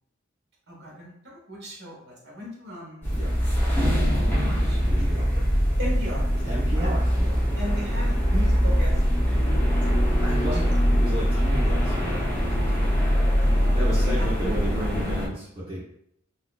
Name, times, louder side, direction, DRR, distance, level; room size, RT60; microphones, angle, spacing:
voice 1, 0.7-3.1 4.0-4.8 5.3-5.4 5.8-6.3 6.8-6.9 7.6-9.0 9.2-10.7 13.4-14.8, equal, 60° right, -3 dB, 1.3 m, -37 dB
sound 1, 3.0-15.3, equal, 10° left, 0.8 m, -22 dB
voice 2, 4.8-5.3 6.4-7.4 10.2-12.9 13.7-15.9, right 1 dB, 25° right, -10 dB, 1.0 m, -33 dB
4.2 x 2.8 x 2.4 m, 0.73 s
head